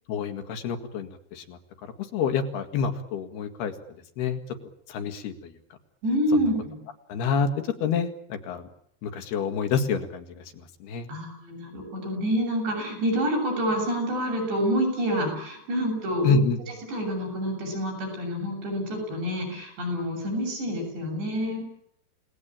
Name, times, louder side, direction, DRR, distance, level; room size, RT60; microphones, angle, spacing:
voice 1, 0.1-1.6 2.1-3.7 4.2-4.4 4.9-5.3 7.1-7.5 7.8-8.7 9.0-10.4 10.8-11.1 16.2-16.6, left 5 dB, 70° left, 7 dB, 3.9 m, -27 dB
voice 2, 6.0-6.8 11.1-16.4 16.7-21.6, equal, 90° right, 2 dB, 9.9 m, -27 dB
30.0 x 18.5 x 8.9 m, 0.72 s
omnidirectional pair, 4.8 m